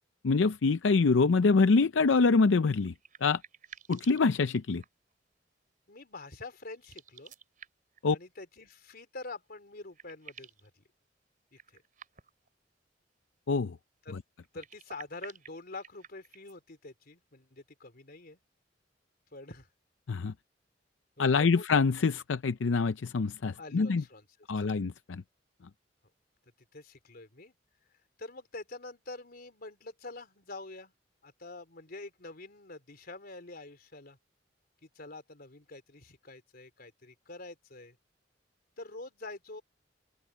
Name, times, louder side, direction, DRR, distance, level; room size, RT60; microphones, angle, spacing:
voice 1, 0.2-2.9 3.2-3.4 3.9-4.8 8.0-8.2 13.5-13.7 20.1-20.3 21.2-24.0 24.5-25.2, left 4 dB, 80° left, 0.5 m, -25 dB
sound 1, 2.6-5.1 6.7-8.0 9.4-9.5 9.7-10.7 11.5-12.5 14.4-16.6, right 8 dB, 45° right, 3.9 m, -52 dB
voice 2, 5.9-7.3 8.1-10.8 11.5-11.8 14.0-14.2 14.5-18.4 19.3-19.7 21.2-21.7 23.6-24.3 24.6-24.8 26.7-27.5 28.2-30.9 31.2-34.2 34.8-38.0 38.8-39.6, left 2 dB, 55° left, 3.6 m, -46 dB
open air
head